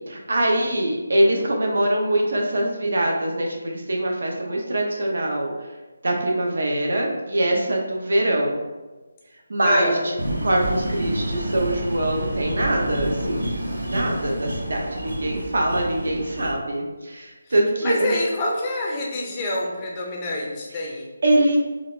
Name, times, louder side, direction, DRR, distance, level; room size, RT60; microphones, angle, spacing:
voice 1, 0.1-5.5 6.0-8.6 9.5-10.1 10.4-13.5 13.9-18.1 21.2-21.6, right 1 dB, 65° right, 0 dB, 0.8 m, -23 dB
voice 2, 9.6-10.1 17.8-21.1, left 1 dB, 15° left, -2 dB, 0.5 m, -26 dB
sound 1, 10.2-16.5, right 1 dB, 85° right, 1.0 m, -29 dB
3.9 x 2.5 x 3.2 m, 1.2 s
figure-of-eight pair, 175°, 0 cm